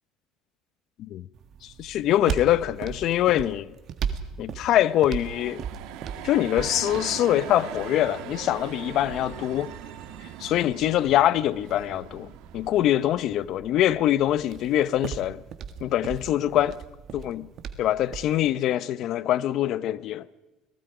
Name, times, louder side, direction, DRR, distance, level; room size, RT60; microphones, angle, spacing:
sound 1, 1.3-18.4, right 7 dB, 50° right, 1.7 m, -39 dB
voice 1, 1.6-3.7 4.4-5.6 6.2-9.7 10.2-15.4 15.8-16.8 17.1-17.5 17.8-20.3, left 12 dB, 60° left, 0.7 m, -24 dB
sound 2, 4.7-13.4, right 10 dB, 75° right, 1.8 m, -40 dB
29.0 x 19.0 x 5.0 m
supercardioid pair, 110°, 0 cm